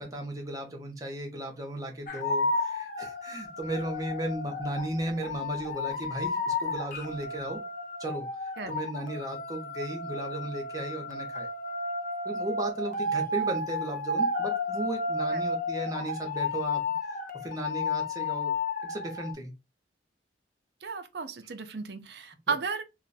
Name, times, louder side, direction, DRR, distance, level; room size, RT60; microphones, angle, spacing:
voice 1, 0.0-7.6 8.0-11.5 12.2-16.8 17.4-18.5 18.8-19.5 22.5-22.6, right 1 dB, 20° right, 0.8 m, -35 dB
sound 1, 2.1-19.3, left 2 dB, 45° left, 0.4 m, -32 dB
voice 2, 20.8-22.8, right 5 dB, 60° right, 0.5 m, -34 dB
2.5 x 2.2 x 3.9 m
head